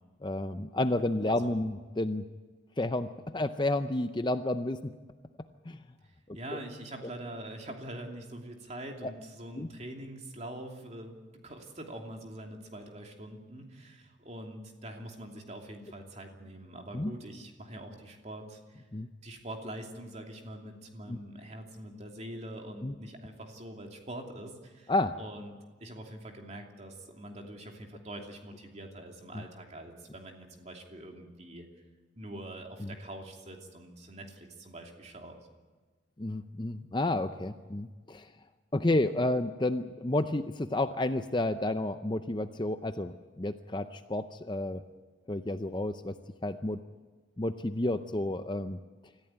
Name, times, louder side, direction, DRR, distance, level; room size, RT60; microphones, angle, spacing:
voice 1, 0.2-2.2 2.8-4.9 5.7-5.8 6.3-6.6 9.0-9.1 9.6-9.7 16.9-17.1 18.9-19.1 21.1-21.2 22.8-22.9 24.9-25.2 29.3-29.4 32.8-32.9 36.2-38.3 38.7-44.8 45.3-46.8 47.4-48.8, left 1 dB, 25° left, 10 dB, 0.6 m, -31 dB
voice 2, 1.3-1.6 6.0-18.8 19.2-24.9 25.2-31.7 32.1-35.4, right 1 dB, 35° right, 2 dB, 2.9 m, -44 dB
25.5 x 14.5 x 9.0 m, 1.4 s
head